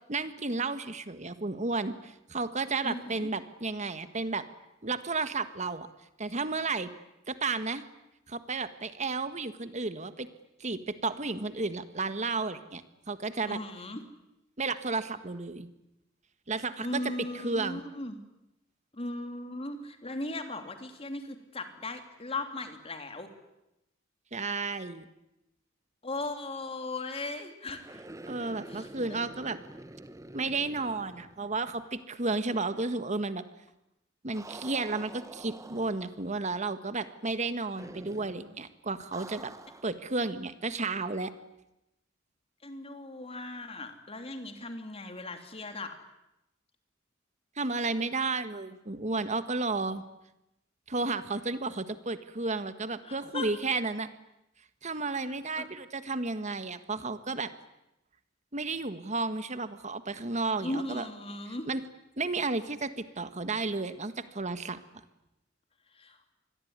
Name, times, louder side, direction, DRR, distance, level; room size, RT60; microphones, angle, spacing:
voice 1, 0.1-4.4 4.8-5.9 6.2-6.9 7.3-7.8 8.3-10.3 10.6-12.8 13.1-13.6 14.6-15.7 16.5-17.8 24.3-25.0 28.3-29.6 30.3-33.4 34.2-39.5 39.8-41.3 47.6-50.0 50.9-54.1 54.8-57.5 58.5-61.1 61.7-61.8 62.2-64.8, right 3 dB, 35° right, 11 dB, 1.6 m, -32 dB
voice 2, 2.8-3.3 13.5-14.0 16.8-18.2 18.9-23.3 26.0-28.0 28.7-28.9 42.6-46.0 53.0-53.5 55.2-55.7 60.6-61.7 65.9-66.2, left 2 dB, 30° left, 6 dB, 3.1 m, -38 dB
sound 1, 27.8-31.9 32.2-32.3 34.3-36.3 37.8-38.4 39.1-40.0, right 2 dB, 15° right, 1.2 m, -47 dB
27.0 x 21.5 x 9.6 m, 0.89 s
head